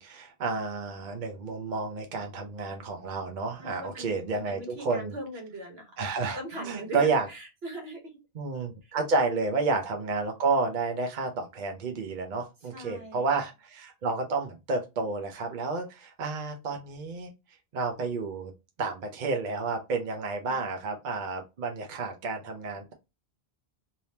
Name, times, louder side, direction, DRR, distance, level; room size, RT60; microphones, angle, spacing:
voice 1, 0.0-5.1 6.0-7.3 8.3-17.3 17.7-18.5 18.8-22.9, right 3 dB, 55° right, 4 dB, 0.8 m, -30 dB
voice 2, 3.6-6.0 6.3-8.1 8.8-8.9 12.7-13.2 20.5-20.6, right 1 dB, 80° right, 3 dB, 1.3 m, -40 dB
3.4 x 2.8 x 2.8 m, 0.25 s
omnidirectional pair, 1.0 m